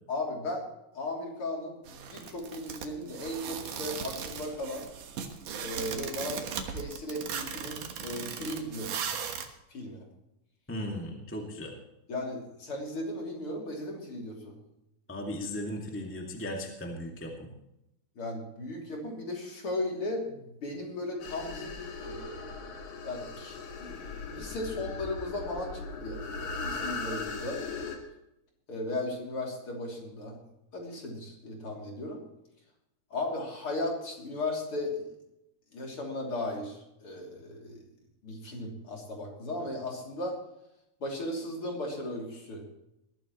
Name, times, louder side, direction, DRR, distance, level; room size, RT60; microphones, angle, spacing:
voice 1, 0.1-0.6 0.9-4.9 5.6-6.4 6.7-8.9 9.7-10.0 12.1-14.6 18.2-22.7 23.0-27.6 28.7-30.4 30.7-32.2 33.1-35.1 35.7-37.9 38.2-40.4 41.0-42.6, left 1 dB, 45° left, -1 dB, 3.8 m, -36 dB
sound 1, 1.9-9.5, right 7 dB, 85° right, 3.0 m, -38 dB
voice 2, 10.7-11.7 15.1-17.5, left 1 dB, 5° left, 0 dB, 1.5 m, -37 dB
sound 2, 21.2-28.0, left 4 dB, 70° left, 3.4 m, -39 dB
21.0 x 14.0 x 3.1 m, 0.84 s
omnidirectional pair, 3.5 m